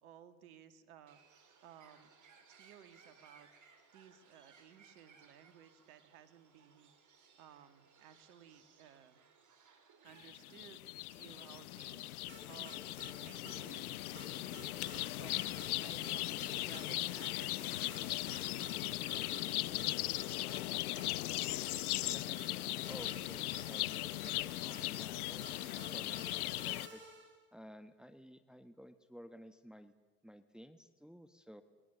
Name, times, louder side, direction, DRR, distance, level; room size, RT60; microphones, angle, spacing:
voice 1, 0.0-1.2 1.6-2.1 2.5-3.5 3.9-6.9 7.4-9.2 10.0-10.8 11.1-20.1, right 9 dB, 80° right, 11 dB, 2.2 m, -58 dB
Bird, 1.1-10.7, right 5 dB, 45° right, 4.6 m, -64 dB
sound 1, 10.2-26.9, left 16 dB, 90° left, 0.8 m, -38 dB
sound 2, 12.3-13.1 13.5-13.6 14.2-15.0 15.3-15.7 16.0-16.9 17.2-17.3 17.9-18.8 19.1-19.5 19.8-21.3 21.7-27.4, right 3 dB, 25° right, 7.7 m, -55 dB
voice 2, 22.0-27.0 27.5-29.9 30.2-31.6, equal, ahead, 9 dB, 1.5 m, -54 dB
29.0 x 22.0 x 6.9 m, 1.2 s
hypercardioid pair, 80°, 43 cm